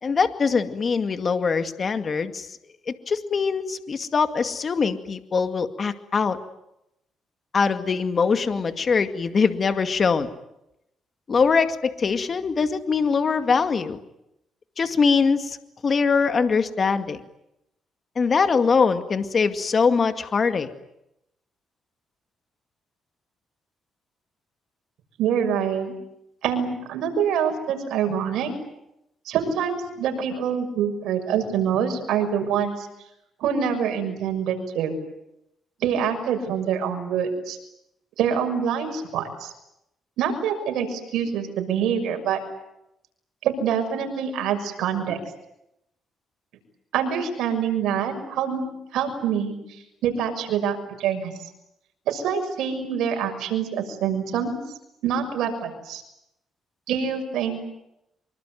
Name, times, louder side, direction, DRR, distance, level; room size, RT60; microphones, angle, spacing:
voice 1, 0.0-2.5 2.9-6.4 7.5-10.3 11.3-14.0 14.8-15.6 15.8-17.2 18.2-20.7, left 5 dB, 40° left, 8 dB, 2.2 m, -22 dB
voice 2, 25.2-25.9 26.4-28.5 29.2-32.9 33.4-34.9 35.8-37.6 38.2-39.5 40.2-42.4 43.4-45.2 46.9-48.7 48.9-49.6 50.0-51.3 52.1-54.6 55.0-56.0 56.9-57.6, right 7 dB, 85° right, 5 dB, 6.4 m, -25 dB
25.5 x 24.0 x 9.4 m, 0.84 s
cardioid pair, 90°, 0 cm